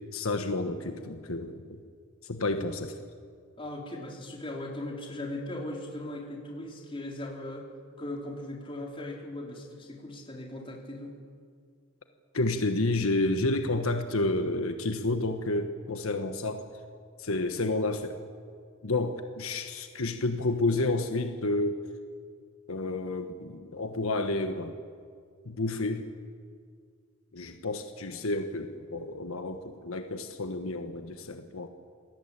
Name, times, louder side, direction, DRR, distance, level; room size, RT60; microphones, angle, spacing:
voice 1, 0.0-1.8 2.2-3.0 12.3-16.6 17.2-18.2 18.8-21.8 22.7-24.7 25.4-26.0 27.3-31.7, left 2 dB, 80° left, 6 dB, 1.4 m, -30 dB
voice 2, 3.6-7.7 8.0-11.2, left 1 dB, 25° left, -1 dB, 4.4 m, -38 dB
27.0 x 18.5 x 8.9 m, 2.1 s
head